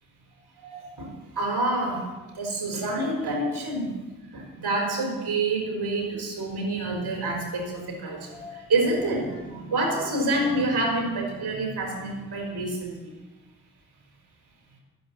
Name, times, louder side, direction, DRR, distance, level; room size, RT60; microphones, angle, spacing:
voice 1, 0.6-2.0 2.3-3.9 4.3-13.1, right 2 dB, 75° right, 0 dB, 4.3 m, -28 dB
11.0 x 7.8 x 9.8 m, 1.2 s
supercardioid pair, 40°, 39 cm